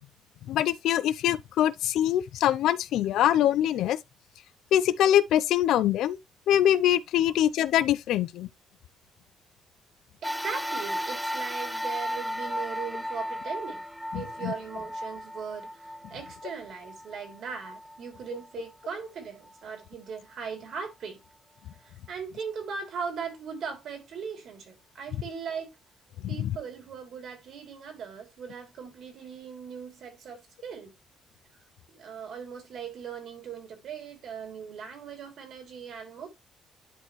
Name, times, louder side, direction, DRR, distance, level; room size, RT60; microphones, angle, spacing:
voice 1, 0.5-4.0 4.7-6.2 6.5-8.5 14.1-14.5 26.2-26.6, left 11 dB, 80° left, 0.5 m, -24 dB
sound 1, 10.2-18.8 19.5-19.6 20.7-20.8, equal, ahead, 0.6 m, -35 dB
voice 2, 10.4-13.9 14.1-21.2 21.8-25.7 26.3-30.9 31.9-36.3, right 6 dB, 60° right, 3.0 m, -39 dB
11.0 x 4.3 x 3.1 m
cardioid pair, 150°, 0 cm